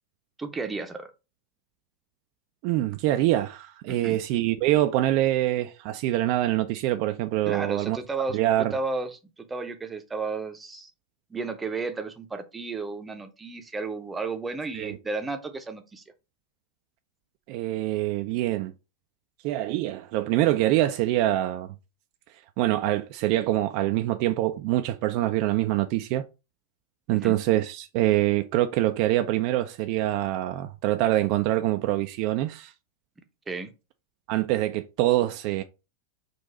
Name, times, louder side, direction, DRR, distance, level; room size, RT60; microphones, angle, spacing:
voice 1, 0.4-1.1 3.9-4.2 7.5-8.4 8.7-10.9 11.3-16.0 27.1-27.4 33.5-33.7, right 3 dB, 15° right, 0.6 m, -33 dB
voice 2, 2.6-8.0 8.3-8.7 14.8-15.0 17.5-18.7 19.4-21.7 22.6-26.3 27.1-32.7 34.3-35.6, right 15 dB, 45° right, 0.3 m, -25 dB
3.8 x 2.5 x 4.1 m
figure-of-eight pair, 90°, 0 cm